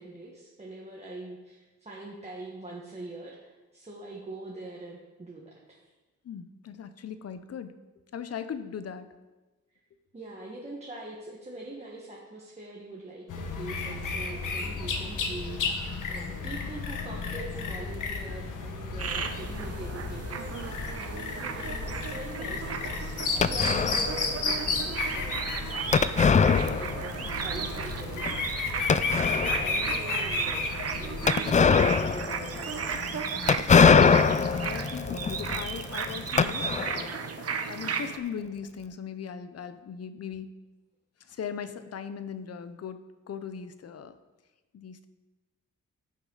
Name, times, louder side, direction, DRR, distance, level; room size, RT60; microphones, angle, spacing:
voice 1, 0.0-5.8 10.1-28.4 29.1-32.8, right 2 dB, 20° right, -4 dB, 1.5 m, -43 dB
voice 2, 6.2-7.8 8.1-9.1 34.4-37.1 37.7-40.5 41.2-44.2 44.7-45.1, left 7 dB, 55° left, 11 dB, 0.7 m, -39 dB
sound 1, 13.3-31.3, left 4 dB, 85° left, 1.4 m, -33 dB
sound 2, 19.0-38.2, right 6 dB, 50° right, 0.9 m, -35 dB
sound 3, 23.4-24.2 25.9-27.3 27.6-27.7 28.2-28.3 28.9-29.7 31.3-37.1, left 6 dB, 25° left, 0.3 m, -23 dB
14.5 x 6.5 x 4.0 m, 1.2 s
cardioid pair, 115°, 30 cm